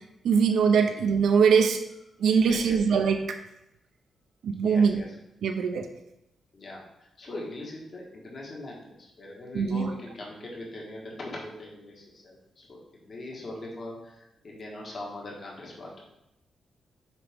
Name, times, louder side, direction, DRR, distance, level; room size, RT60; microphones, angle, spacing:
voice 1, 0.2-1.8 2.2-3.4 4.4-5.0 5.4-5.9 9.5-9.9, right 6 dB, 85° right, 5 dB, 0.7 m, -22 dB
voice 2, 2.4-2.9 4.6-5.1 6.5-15.9, left 2 dB, 45° left, -2 dB, 1.7 m, -41 dB
9.2 x 3.8 x 3.6 m, 0.85 s
cardioid pair, 115°, 0 cm